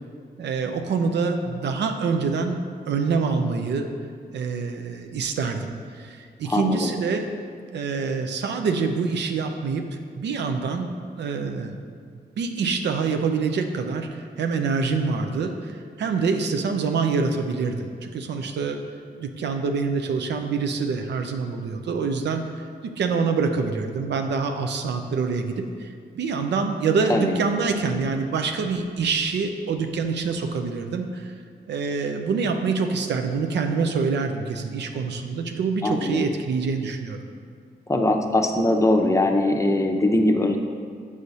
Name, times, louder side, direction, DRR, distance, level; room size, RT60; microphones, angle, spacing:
voice 1, 0.4-2.6 2.9-3.9 4.3-7.3 7.7-9.8 10.1-10.9 11.2-11.8 12.4-18.8 19.2-22.4 22.8-31.3 31.7-37.2, right 5 dB, 90° right, 5 dB, 0.5 m, -26 dB
voice 2, 6.5-6.9 27.1-27.3 35.8-36.3 37.9-40.6, left 1 dB, 15° left, 3 dB, 0.7 m, -21 dB
6.7 x 5.0 x 4.1 m, 2.1 s
cardioid pair, 65°, 17 cm